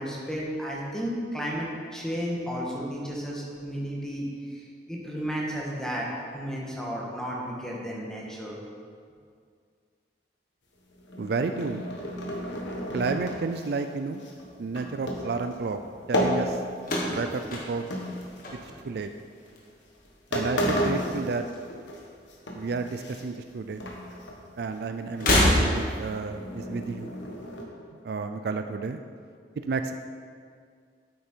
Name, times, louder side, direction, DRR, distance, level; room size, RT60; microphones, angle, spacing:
voice 1, 0.0-6.1 6.3-8.6, equal, 5° left, -4 dB, 1.6 m, -33 dB
sound 1, 10.9-17.0 17.3-18.8 19.5-19.6 20.1-20.2 20.3-22.0 22.3-23.5 23.8-24.4 24.7-24.8 25.2-27.7, equal, 85° left, 1.4 m, -33 dB
voice 2, 11.2-11.8 12.9-14.2 14.6-15.8 16.1-16.6 17.1-17.9 18.6-19.1 20.3-21.4 22.5-23.9 24.6-27.1 28.0-29.0 29.6-29.9, right 4 dB, 60° right, 8 dB, 0.4 m, -31 dB
sound 2, 16.8-19.1 19.4-20.0 21.1-22.1 22.4-22.5 23.6-23.7 25.1-26.1, left 1 dB, 50° left, 1.7 m, -26 dB
8.8 x 8.6 x 4.5 m, 2.1 s
head